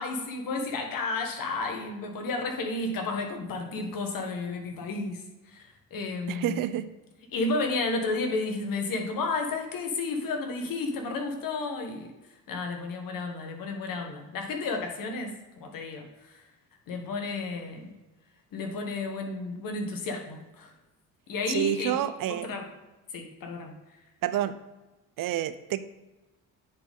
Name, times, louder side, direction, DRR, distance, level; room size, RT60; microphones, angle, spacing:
voice 1, 0.0-6.8 7.3-12.1 12.5-16.4 16.9-17.9 18.5-20.7 21.3-22.7 23.1-23.7, left 3 dB, 70° left, 3 dB, 1.5 m, -32 dB
voice 2, 6.3-6.8 21.5-22.5 24.2-24.5 25.2-25.8, right 12 dB, 70° right, 13 dB, 0.6 m, -28 dB
9.6 x 4.3 x 3.7 m, 1.1 s
cardioid pair, 75°, 35 cm